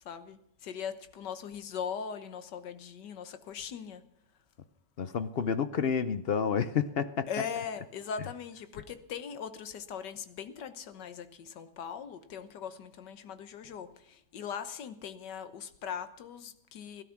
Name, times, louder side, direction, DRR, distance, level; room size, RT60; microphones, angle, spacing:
voice 1, 0.0-4.1 7.3-17.0, left 7 dB, 90° left, 1.7 m, -40 dB
voice 2, 5.0-7.3, left 6 dB, 55° left, 0.6 m, -29 dB
17.0 x 12.5 x 5.9 m
omnidirectional pair, 1.8 m